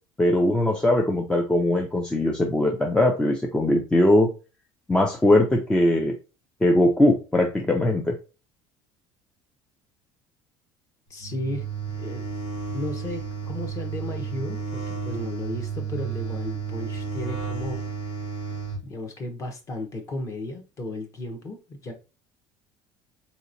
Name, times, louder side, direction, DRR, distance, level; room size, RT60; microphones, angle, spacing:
voice 1, 0.2-4.3 4.9-6.1 6.6-8.2, left 1 dB, 10° left, 0.4 m, -20 dB
voice 2, 11.1-12.2 12.7-17.8 18.8-21.9, left 1 dB, 30° left, 0.8 m, -34 dB
sound 1, 11.2-18.8, right 6 dB, 70° left, 1.6 m, -32 dB
4.1 x 2.9 x 2.6 m
cardioid pair, 155°, 11 cm